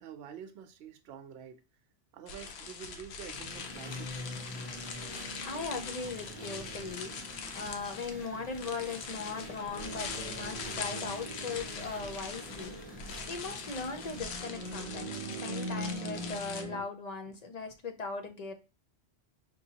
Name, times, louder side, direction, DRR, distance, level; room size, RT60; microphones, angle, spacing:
voice 1, 0.0-1.6 2.1-4.4 6.0-6.1, right 8 dB, 65° right, 0.8 m, -48 dB
sound 1, 2.3-16.6, left 5 dB, 70° left, 0.9 m, -43 dB
sound 2, 3.3-16.8, right 1 dB, 40° right, 0.5 m, -43 dB
sound 3, 3.5-14.2, left 2 dB, 10° left, 0.9 m, -51 dB
voice 2, 5.4-13.0 13.3-18.5, left 4 dB, 45° left, 0.6 m, -39 dB
5.3 x 2.6 x 2.8 m
omnidirectional pair, 1.2 m